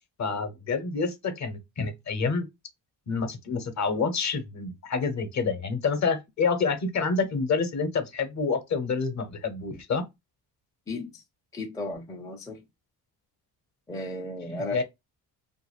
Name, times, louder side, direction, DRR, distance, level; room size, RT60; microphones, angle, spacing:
voice 1, 0.2-2.5 3.1-10.0 14.4-14.8, left 4 dB, 40° left, 0.8 m, -28 dB
voice 2, 11.5-12.6 13.9-14.8, left 2 dB, 10° left, 0.4 m, -34 dB
2.5 x 2.3 x 3.0 m
cardioid pair, 105°, 42 cm